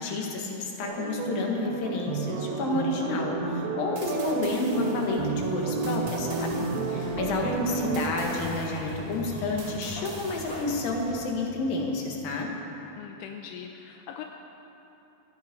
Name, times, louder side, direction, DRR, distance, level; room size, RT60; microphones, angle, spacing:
voice 1, 0.0-12.5, left 3 dB, 55° left, 0 dB, 3.2 m, -30 dB
sound 1, 0.8-8.1, right 4 dB, 75° right, 3.7 m, -31 dB
sound 2, 4.0-11.1, right 4 dB, 50° right, 3.1 m, -47 dB
Sliding door, 6.8-12.5, left 1 dB, 35° left, 5.6 m, -41 dB
voice 2, 13.0-14.2, left 9 dB, 80° left, 3 dB, 2.5 m, -41 dB
18.5 x 14.5 x 5.4 m, 3.0 s
omnidirectional pair, 5.3 m